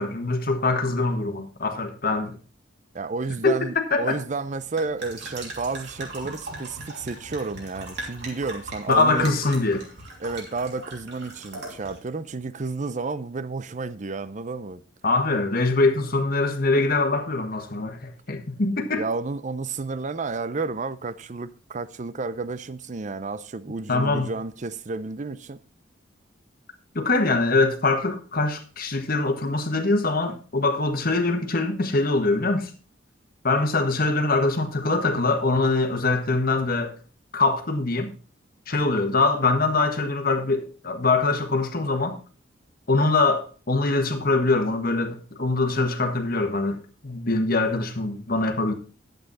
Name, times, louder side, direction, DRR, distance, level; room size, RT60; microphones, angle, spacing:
voice 1, 0.0-2.4 3.4-4.2 8.9-9.8 15.0-19.0 23.9-24.3 26.9-32.7 33.4-36.9 37.3-38.1 38.7-42.2 42.9-48.7, left 3 dB, 50° left, 1.4 m, -23 dB
voice 2, 2.9-9.3 10.2-14.8 19.0-25.6, right 3 dB, 40° right, 0.5 m, -31 dB
sound 1, 4.2-12.1, right 2 dB, 60° right, 3.0 m, -40 dB
10.5 x 8.0 x 4.1 m
head